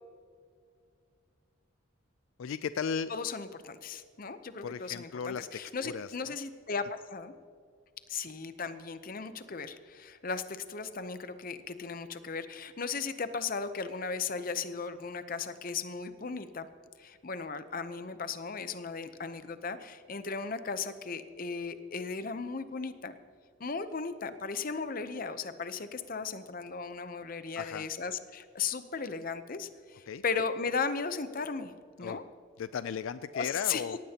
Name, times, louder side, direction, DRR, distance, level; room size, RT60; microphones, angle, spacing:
voice 1, 2.4-3.1 4.6-6.3 27.6-27.9 30.1-30.2 32.0-32.2 32.6-34.0, left 6 dB, 70° left, 13 dB, 0.3 m, -36 dB
voice 2, 3.1-7.3 8.1-16.7 17.0-23.2 23.6-31.7 32.0-32.2 33.3-33.8, left 5 dB, 40° left, 11 dB, 0.7 m, -36 dB
18.0 x 15.5 x 2.9 m, 2.3 s
head